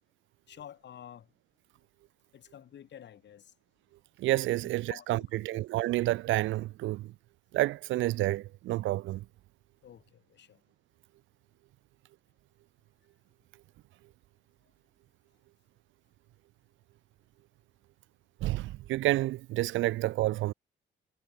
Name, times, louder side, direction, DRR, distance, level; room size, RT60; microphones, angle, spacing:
voice 1, 0.5-1.3 2.3-3.5 4.9-5.6 9.8-10.6, left 10 dB, 60° left, 3.1 m, -50 dB
voice 2, 4.2-7.1 7.5-9.2 18.4-20.5, right 17 dB, 80° right, 0.4 m, -29 dB
cardioid pair, 90°, 20 cm